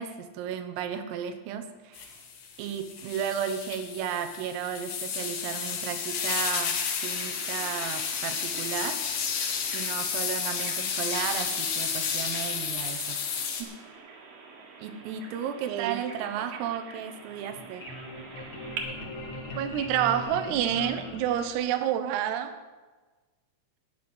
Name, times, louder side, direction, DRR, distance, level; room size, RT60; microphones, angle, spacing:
voice 1, 0.0-2.2 2.6-6.8 7.0-9.4 9.7-13.2 13.6-13.8 14.8-17.8, right 8 dB, 90° right, 7 dB, 3.7 m, -34 dB
sound 1, 1.9-13.6, left 6 dB, 60° left, 2.9 m, -32 dB
Bird vocalization bird call bird song, 7.0-18.8, right 5 dB, 60° right, 2.7 m, -46 dB
voice 2, 15.7-16.0 16.3-16.5 19.5-22.5, right 10 dB, 75° right, 8 dB, 2.6 m, -27 dB
sound 2, 17.3-22.0, left 1 dB, 40° left, 2.1 m, -40 dB
13.5 x 10.5 x 6.1 m, 1.3 s
omnidirectional pair, 5.8 m